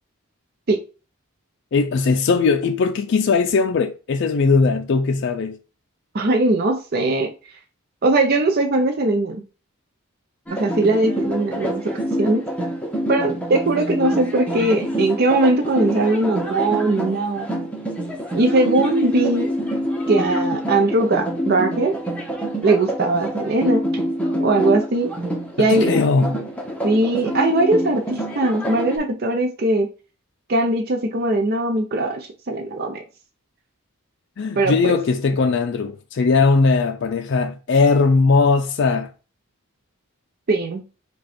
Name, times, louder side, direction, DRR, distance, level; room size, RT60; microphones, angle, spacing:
voice 1, 1.7-5.6 25.6-26.4 34.4-39.1, left 4 dB, 55° left, 0.4 m, -19 dB
voice 2, 6.1-7.3 8.0-9.4 10.6-11.8 12.2-12.5 13.1-17.5 18.3-19.5 20.1-21.9 22.6-23.8 24.4-25.1 25.6-25.9 26.8-29.9 30.5-33.0 34.6-34.9 40.5-40.8, right 2 dB, 45° right, 0.6 m, -20 dB
sound 1, 10.5-29.0, equal, 5° left, 0.8 m, -26 dB
5.1 x 2.3 x 4.2 m
head